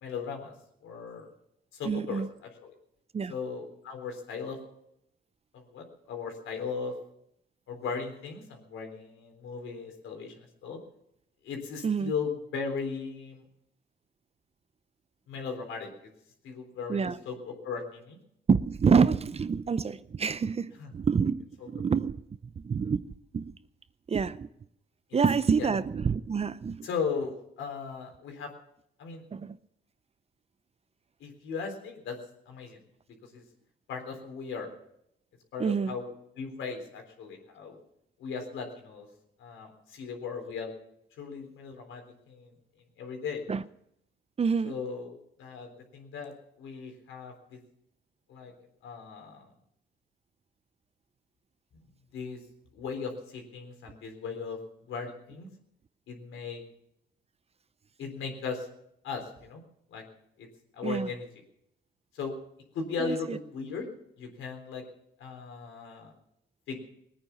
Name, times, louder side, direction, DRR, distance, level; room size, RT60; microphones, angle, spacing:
voice 1, 0.0-0.5 0.8-1.3 1.7-2.7 3.3-4.6 5.5-6.9 7.7-10.8 11.4-13.4 15.3-16.1 16.4-18.2 20.8-20.9 21.6-21.7 25.6-25.7 26.8-28.5 29.0-29.2 31.2-32.2 32.5-32.8 33.2-33.4 33.9-34.7 35.5-36.1 36.4-37.8 38.2-39.1 39.4-40.7 41.2-42.5 43.0-43.4 44.6-47.6 48.3-48.5 48.8-49.5 51.7-51.8 52.1-52.4 52.7-54.6 54.9-55.5 56.1-56.6 58.0-58.7 59.0-59.6 59.9-60.0 60.4-60.5 60.7-61.3 62.1-62.3 62.7-63.9 64.2-64.8 65.2-66.1 66.7-66.8, left 5 dB, 80° left, 3.9 m, -37 dB
voice 2, 1.8-2.3 3.1-3.3 11.8-12.1 16.9-17.2 18.5-22.2 22.6-23.1 23.3-23.5 24.1-24.5 25.1-26.9 29.3-29.6 35.6-36.0 43.5-43.6 44.4-44.7 60.8-61.1 63.0-63.4, right 5 dB, 30° right, 0.6 m, -27 dB
19.5 x 9.5 x 7.1 m
cardioid pair, 90°, 20 cm